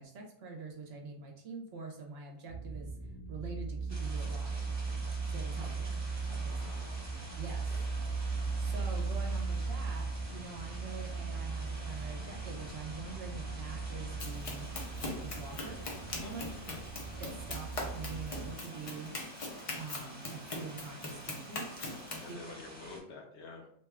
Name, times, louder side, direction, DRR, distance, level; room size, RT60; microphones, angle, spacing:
voice 1, 0.0-4.6 5.3-6.0 6.3-6.7 7.3-7.7 8.6-14.7 15.0-15.8 16.2-16.4 17.2-19.1 19.7-21.8 22.3-22.6, right 4 dB, 60° right, 0 dB, 0.8 m, -45 dB
sound 1, 2.5-18.5, right 4 dB, 45° right, 0.5 m, -38 dB
sound 2, 3.9-23.0, right 1 dB, 25° right, 1.0 m, -49 dB
voice 2, 6.4-7.0 7.7-7.8 16.2-16.8 22.2-23.7, left 3 dB, 65° left, 0 dB, 0.9 m, -49 dB
Run, 14.2-22.3, left 2 dB, 45° left, 0.5 m, -42 dB
2.9 x 2.2 x 3.4 m, 0.69 s
omnidirectional pair, 1.3 m